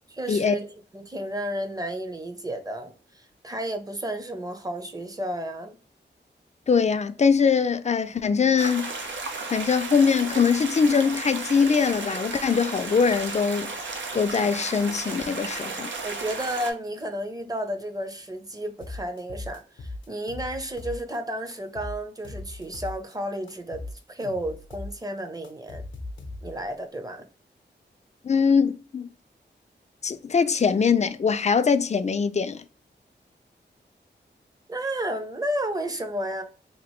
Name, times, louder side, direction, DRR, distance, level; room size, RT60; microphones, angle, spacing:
voice 1, 0.2-0.7 0.9-5.8 16.0-23.8 24.1-25.8 26.4-27.3 34.7-36.4, right 1 dB, 20° right, 0.7 m, -32 dB
voice 2, 6.7-8.9 9.5-13.7 14.1-15.9 28.2-29.1 30.0-32.6, left 6 dB, 35° left, 0.4 m, -22 dB
sound 1, 8.6-16.7, right 3 dB, 85° right, 0.6 m, -34 dB
sound 2, 18.8-21.2 21.5-23.2 23.5-26.7, left 2 dB, 80° left, 0.6 m, -39 dB
2.9 x 2.5 x 3.0 m
cardioid pair, 60°, 19 cm